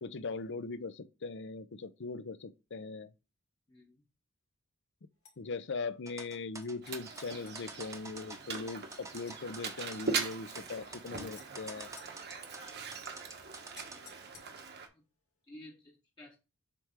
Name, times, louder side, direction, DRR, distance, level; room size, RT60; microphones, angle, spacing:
voice 1, 0.0-3.1 5.4-11.9, left 4 dB, 55° left, 0.6 m, -40 dB
voice 2, 3.7-4.0 12.6-12.9 14.9-15.0 15.5-16.4, left 1 dB, 20° left, 0.9 m, -54 dB
sound 1, 5.2-5.4 6.3-7.6 8.5-8.6 8.9-9.4 10.2-10.4 11.3-12.8 13.7-14.8, left 5 dB, 85° left, 2.3 m, -58 dB
sound 2, 6.1-14.0, right 3 dB, 15° right, 0.8 m, -48 dB
Mechanisms, 6.8-14.9, right 5 dB, 50° right, 1.1 m, -41 dB
7.7 x 3.4 x 5.0 m
head